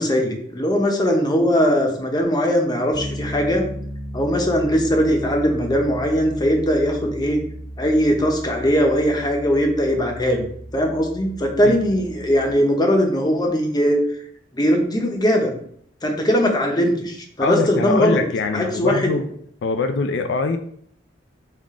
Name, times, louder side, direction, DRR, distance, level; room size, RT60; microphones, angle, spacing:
voice 1, 0.0-3.7 4.1-7.4 7.8-10.5 10.7-14.0 14.5-15.5 16.0-18.2 18.5-19.1, equal, 20° left, 2 dB, 0.7 m, -20 dB
Piano, 2.9-12.5, equal, 40° right, 1.3 m, -35 dB
voice 2, 17.4-19.3 19.6-20.6, left 4 dB, 75° left, 8 dB, 0.4 m, -23 dB
5.6 x 2.4 x 3.6 m, 0.63 s
head